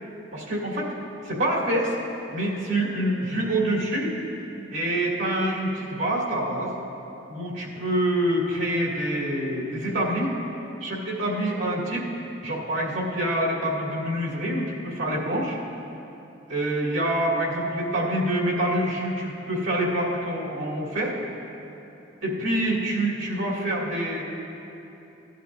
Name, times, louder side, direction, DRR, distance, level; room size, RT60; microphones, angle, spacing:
voice 1, 0.3-0.9 1.2-2.0 2.3-4.1 4.7-6.7 7.3-10.3 10.8-12.1 12.4-15.6 16.5-21.2 22.2-24.2, right 1 dB, 80° right, -5 dB, 2.5 m, -26 dB
17.0 x 11.0 x 2.6 m, 2.9 s
head